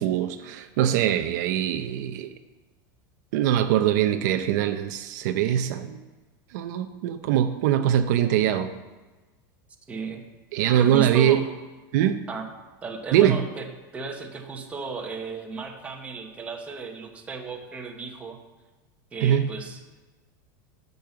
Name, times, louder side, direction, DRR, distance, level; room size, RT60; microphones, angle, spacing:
voice 1, 0.0-2.3 3.3-6.0 6.5-8.7 10.5-11.4 11.9-12.2 13.1-13.4 19.2-19.5, right 11 dB, 60° right, 8 dB, 0.6 m, -22 dB
voice 2, 9.9-10.2 10.6-11.4 12.3-12.5 12.8-13.7 13.9-18.4 19.1-19.8, right 4 dB, 10° right, 2 dB, 1.1 m, -34 dB
10.5 x 5.5 x 7.9 m, 1.2 s
supercardioid pair, 165°, 11 cm